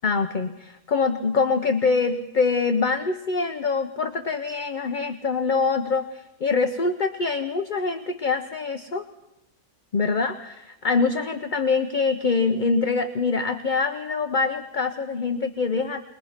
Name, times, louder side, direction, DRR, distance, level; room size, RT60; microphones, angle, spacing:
voice 1, 0.0-9.0 9.9-16.0, left 4 dB, 40° left, 7 dB, 0.7 m, -24 dB
23.0 x 20.5 x 5.8 m, 0.91 s
omnidirectional pair, 1.6 m